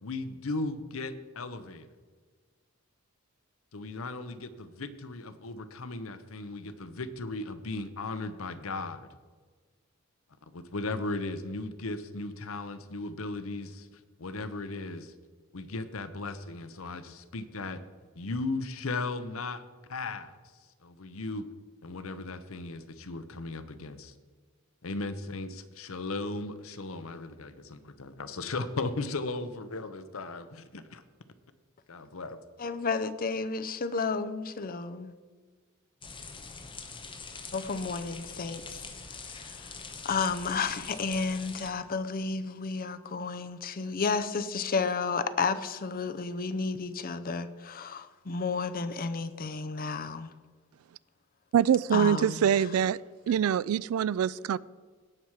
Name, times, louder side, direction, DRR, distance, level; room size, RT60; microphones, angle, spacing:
voice 1, 0.0-1.9 3.7-9.1 10.5-15.1 15.5-17.8 18.2-19.6 19.9-20.3 20.8-21.5 21.8-24.1 24.8-31.0 31.9-32.4, left 3 dB, 70° left, 0.8 m, -36 dB
voice 2, 32.6-35.2 37.5-38.8 39.3-39.7 40.0-50.3 51.9-52.4, left 4 dB, 45° left, 0.6 m, -32 dB
sound 1, 36.0-41.7, left 4 dB, 25° left, 1.0 m, -44 dB
voice 3, 51.5-53.0 53.3-54.6, right 8 dB, 80° right, 0.3 m, -24 dB
17.5 x 5.9 x 4.8 m
head